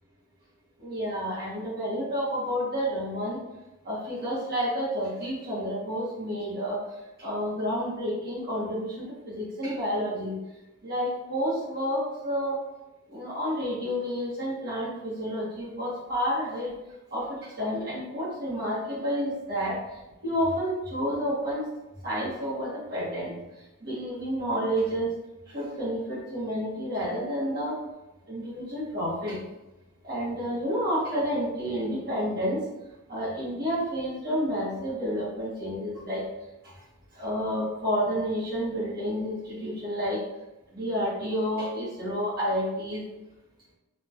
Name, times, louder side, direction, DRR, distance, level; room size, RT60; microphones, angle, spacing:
voice 1, 0.8-3.4 3.8-6.8 7.2-10.4 10.8-12.6 13.1-16.7 17.1-19.8 20.2-21.7 22.0-23.4 23.8-25.1 25.5-27.8 28.3-29.4 30.0-32.6 33.1-36.2 37.1-40.2 40.7-43.0, equal, 45° right, -9 dB, 0.9 m, -30 dB
2.7 x 2.2 x 2.3 m, 0.98 s
head